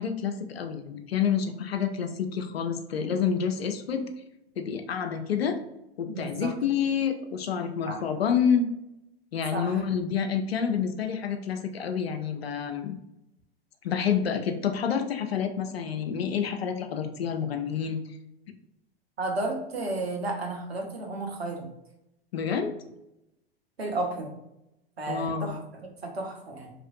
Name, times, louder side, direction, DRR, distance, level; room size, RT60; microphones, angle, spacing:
voice 1, 0.0-4.1 4.6-5.6 6.0-8.7 9.3-13.0 13.8-18.0 22.3-22.7 25.1-25.6, left 7 dB, 80° left, 7 dB, 0.5 m, -28 dB
voice 2, 6.1-6.5 7.9-8.0 9.5-9.8 19.2-21.7 23.8-24.3 25.0-25.6 26.0-26.7, right 2 dB, 85° right, 1 dB, 0.8 m, -32 dB
2.9 x 2.4 x 2.6 m, 0.86 s
figure-of-eight pair, 95°, 30 cm